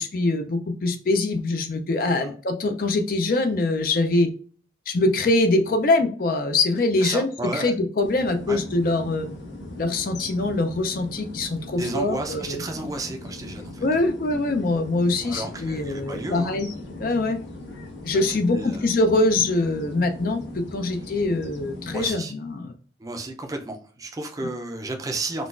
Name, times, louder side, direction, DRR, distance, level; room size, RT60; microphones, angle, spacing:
voice 1, 0.0-4.3 4.9-9.3 9.8-12.6 13.8-16.7 17.0-17.4 18.0-22.7 24.4-24.5, left 2 dB, 50° left, 7 dB, 0.4 m, -23 dB
voice 2, 2.0-2.3 7.0-7.7 8.5-8.6 11.8-13.8 15.2-16.6 18.1-18.2 18.5-18.8 21.9-22.3 23.0-25.5, right 2 dB, 20° right, 4 dB, 0.4 m, -32 dB
sound 1, 8.0-22.2, left 1 dB, 80° left, 1.0 m, -39 dB
3.8 x 2.3 x 2.4 m, 0.42 s
head